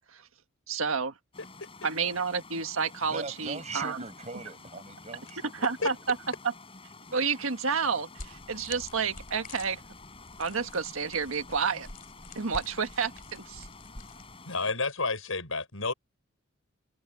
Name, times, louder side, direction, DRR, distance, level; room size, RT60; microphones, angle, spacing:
voice 1, 0.7-1.1 1.8-4.0 5.5-6.2 6.4-6.5 7.1-9.8 10.4-11.9 12.4-13.7, right 5 dB, 85° right, 1.6 m, -30 dB
sound 1, 1.3-14.7, left 3 dB, 25° left, 6.9 m, -50 dB
voice 2, 3.0-6.0, right 3 dB, 35° right, 5.5 m, -41 dB
sound 2, 8.2-14.4, left 3 dB, 45° left, 3.7 m, -47 dB
voice 3, 14.5-15.9, left 3 dB, 85° left, 6.1 m, -30 dB
head